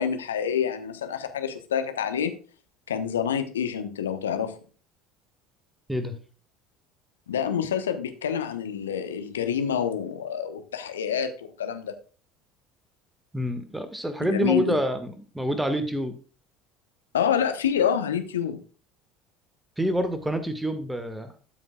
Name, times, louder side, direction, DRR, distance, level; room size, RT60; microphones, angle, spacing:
voice 1, 0.0-2.3 2.9-4.6 7.3-12.0 14.3-14.8 17.1-18.6, left 8 dB, 75° left, 9 dB, 1.0 m, -27 dB
voice 2, 13.3-16.1 19.8-21.3, equal, 5° right, 9 dB, 1.6 m, -27 dB
13.0 x 7.1 x 2.3 m, 0.37 s
figure-of-eight pair, 65°, 0 cm